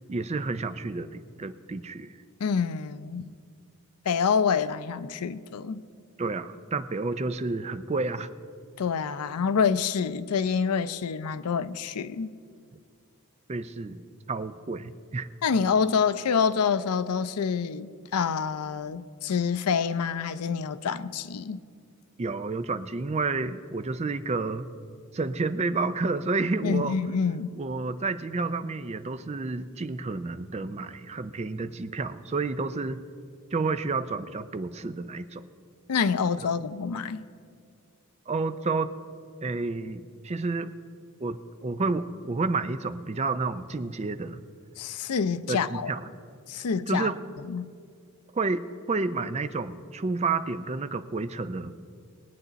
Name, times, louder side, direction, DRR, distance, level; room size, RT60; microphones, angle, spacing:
voice 1, 0.1-2.1 6.2-8.3 13.5-14.0 14.3-15.3 22.2-24.7 25.1-27.0 27.6-33.0 33.5-35.4 38.3-38.9 39.4-40.7 41.2-44.4 45.5-46.0 46.9-47.3 48.3-51.8, right 3 dB, 30° right, 0.4 m, -30 dB
voice 2, 2.4-3.3 4.1-5.8 8.8-12.4 15.4-21.6 26.6-27.5 35.9-37.3 44.8-45.9 46.5-47.1 47.5-47.7, left 6 dB, 90° left, 0.5 m, -27 dB
20.5 x 8.8 x 4.0 m
head